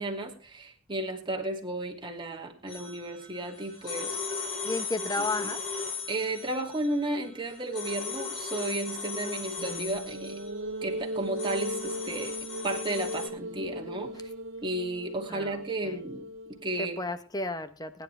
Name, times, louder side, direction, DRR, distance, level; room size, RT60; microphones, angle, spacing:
voice 1, 0.0-4.5 5.2-5.5 6.1-10.4 10.8-14.3 14.6-17.0, right 2 dB, 25° right, 1 dB, 2.6 m, -34 dB
sound 1, 2.7-13.3, left 5 dB, 65° left, 5.4 m, -37 dB
voice 2, 4.6-5.6 15.3-16.0 16.8-18.0, left 2 dB, 20° left, 11 dB, 1.1 m, -33 dB
sound 2, 9.6-17.0, equal, 70° right, 1.5 m, -38 dB
21.0 x 10.5 x 3.4 m, 0.36 s
head